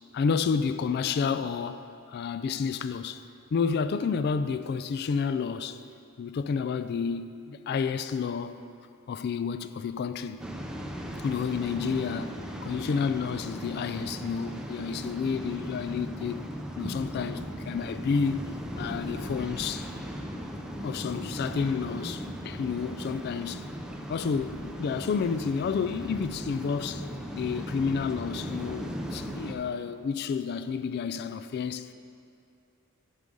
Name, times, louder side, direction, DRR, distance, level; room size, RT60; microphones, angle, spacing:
voice 1, 0.1-1.8 2.1-3.2 3.5-5.8 6.2-8.6 9.1-10.4 11.2-18.5 18.8-19.9 20.8-23.7 24.1-31.9, left 5 dB, 50° left, 0.3 m, -30 dB
Waves surf, 10.4-29.5, equal, 5° right, 0.5 m, -38 dB
13.0 x 4.8 x 5.3 m
head